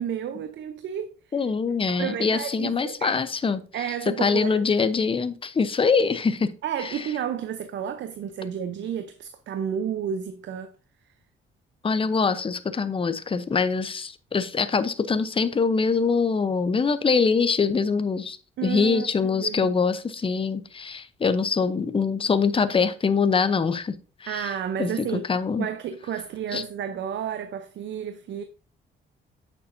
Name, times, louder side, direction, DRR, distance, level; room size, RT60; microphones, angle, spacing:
voice 1, 0.0-1.4 1.9-3.2 3.7-4.6 6.6-10.7 18.6-19.1 19.3-19.7 24.3-25.3 25.6-28.4, right 8 dB, 65° right, 0.7 m, -31 dB
voice 2, 1.3-3.6 4.1-6.5 6.8-7.1 11.8-18.4 18.6-24.5 24.8-25.7 26.5-26.6, left 5 dB, 25° left, 0.8 m, -24 dB
8.3 x 7.0 x 2.6 m
cardioid pair, 90°, 20 cm